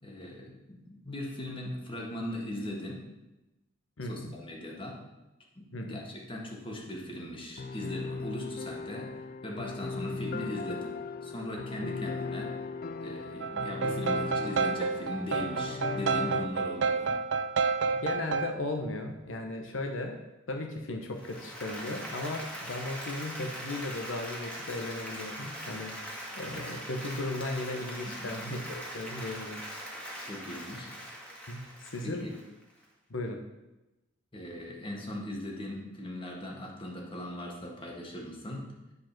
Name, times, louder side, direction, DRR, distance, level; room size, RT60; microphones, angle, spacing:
voice 1, 0.0-3.0 4.1-5.0 5.5-9.1 9.4-12.6 13.0-17.1 28.1-28.3 30.2-30.9 31.6-31.7 32.0-32.3 34.3-38.7, left 1 dB, 25° left, -1 dB, 1.6 m, -39 dB
voice 2, 4.0-4.4 5.7-6.0 17.9-20.2 20.5-26.0 26.4-29.6 31.5-32.3 33.1-33.4, left 2 dB, 75° left, 3 dB, 0.9 m, -36 dB
sound 1, 7.6-16.5, left 4 dB, 50° left, 0.4 m, -37 dB
sound 2, 13.4-18.5, right 5 dB, 65° right, 0.5 m, -30 dB
Applause, 21.1-32.8, equal, 5° left, 1.7 m, -41 dB
9.6 x 5.0 x 5.9 m, 1.0 s
head